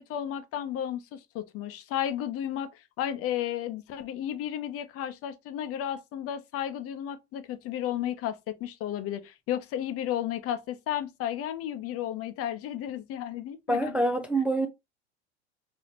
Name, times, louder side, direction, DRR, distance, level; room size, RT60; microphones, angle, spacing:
voice 1, 0.0-2.7 3.0-14.0, left 10 dB, 45° left, 0.7 m, -33 dB
voice 2, 13.7-14.7, right 2 dB, 5° right, 0.4 m, -26 dB
4.2 x 2.8 x 2.8 m
hypercardioid pair, 80°, 32 cm